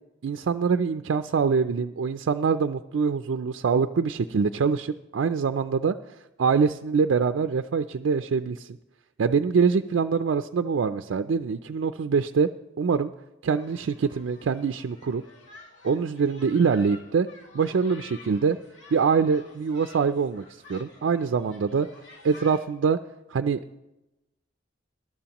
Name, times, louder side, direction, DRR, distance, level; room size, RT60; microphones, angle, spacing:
voice 1, 0.2-6.0 6.4-8.8 9.2-12.5 12.8-13.1 13.4-15.2 15.8-17.3 17.5-18.6 18.9-20.4 20.7-21.9 22.2-23.0 23.3-23.6, right 5 dB, 80° right, 9 dB, 0.4 m, -24 dB
sound 1, 13.5-22.7, left 3 dB, 80° left, 2.3 m, -50 dB
21.5 x 12.0 x 2.9 m, 0.96 s
head